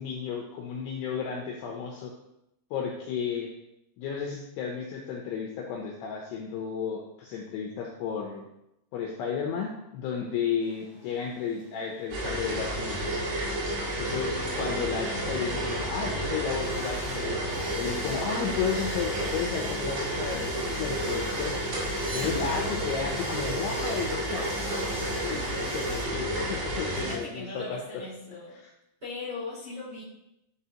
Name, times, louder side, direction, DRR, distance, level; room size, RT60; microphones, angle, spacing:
voice 1, 0.0-2.1 2.7-3.5 4.0-8.5 8.9-13.2 14.0-17.4 17.8-21.5 22.1-24.6 25.1-28.0, left 6 dB, 80° left, 0 dB, 2.5 m, -33 dB
sound 1, 10.6-26.0, equal, 10° right, 0.5 m, -47 dB
sound 2, 12.1-27.1, right 1 dB, 80° right, 4.4 m, -31 dB
sound 3, 21.7-23.6, equal, 45° right, 3.9 m, -41 dB
voice 2, 26.9-28.6 29.0-30.0, left 3 dB, 25° right, -9 dB, 2.3 m, -39 dB
11.5 x 4.1 x 2.8 m, 0.86 s
omnidirectional pair, 5.4 m